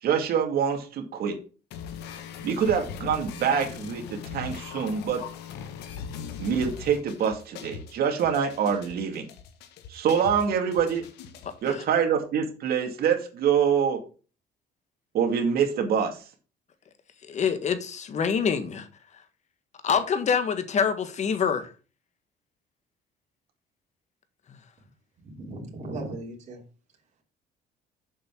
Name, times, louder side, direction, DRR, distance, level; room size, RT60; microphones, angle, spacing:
voice 1, 0.0-1.3 2.4-5.2 6.4-9.3 9.9-11.0 11.6-14.0 15.1-16.2, right 7 dB, 65° right, 2.4 m, -25 dB
sound 1, 1.7-11.7, left 7 dB, 85° left, 1.3 m, -40 dB
voice 2, 17.3-18.9 19.8-21.7, left 6 dB, 45° left, 1.5 m, -26 dB
voice 3, 25.2-26.6, right 2 dB, 40° right, 3.2 m, -37 dB
7.4 x 5.5 x 6.0 m
cardioid pair, 110°, 17 cm